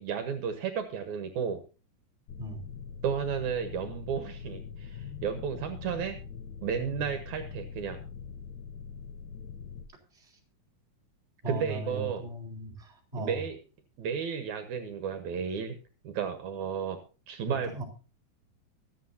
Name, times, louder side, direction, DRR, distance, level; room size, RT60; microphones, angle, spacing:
voice 1, 0.0-1.6 3.0-6.2 6.6-8.0 11.5-12.2 13.2-13.6 14.0-15.8 16.0-17.0 17.3-17.7, right 7 dB, 75° right, 8 dB, 2.5 m, -33 dB
sound 1, 2.3-9.9, left 6 dB, 75° left, 2.3 m, -43 dB
voice 2, 11.4-13.4 17.5-17.8, right 1 dB, 20° right, -3 dB, 4.0 m, -38 dB
24.0 x 8.0 x 2.8 m, 0.33 s
omnidirectional pair, 3.6 m